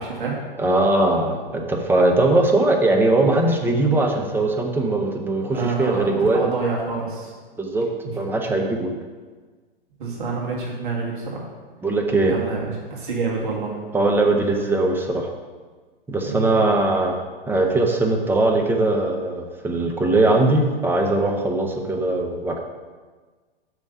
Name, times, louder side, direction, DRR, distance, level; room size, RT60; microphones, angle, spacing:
voice 1, 0.0-0.4 5.5-7.3 8.0-8.1 10.0-11.5 12.3-13.8 16.2-16.6, right 4 dB, 60° right, -3 dB, 2.0 m, -27 dB
voice 2, 0.6-6.5 7.6-7.9 8.2-8.9 11.8-12.3 13.9-15.3 16.1-17.2 17.5-22.6, right 2 dB, 5° right, 1 dB, 0.6 m, -20 dB
6.1 x 5.3 x 5.6 m, 1.4 s
figure-of-eight pair, 105°, 29 cm